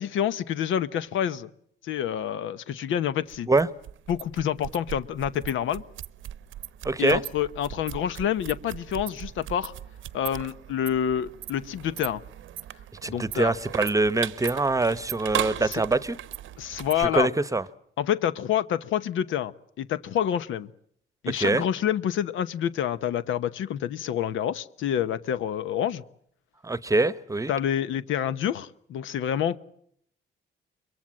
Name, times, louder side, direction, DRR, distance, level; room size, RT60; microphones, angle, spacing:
voice 1, 0.0-1.5 1.8-3.5 4.1-5.8 7.0-9.7 10.1-12.2 13.0-13.5 15.6-15.8 16.6-17.3 18.0-19.5 19.8-20.7 21.2-26.0 27.5-29.6, left 10 dB, 80° left, 14 dB, 1.0 m, -27 dB
sound 1, 3.3-17.1, right 12 dB, 80° right, 0.9 m, -38 dB
voice 2, 6.8-7.2 13.0-16.1 17.0-17.6 21.4-21.6 26.6-27.5, right 2 dB, 15° right, 18 dB, 1.0 m, -24 dB
23.0 x 23.0 x 7.5 m, 0.67 s
cardioid pair, 90°, 20 cm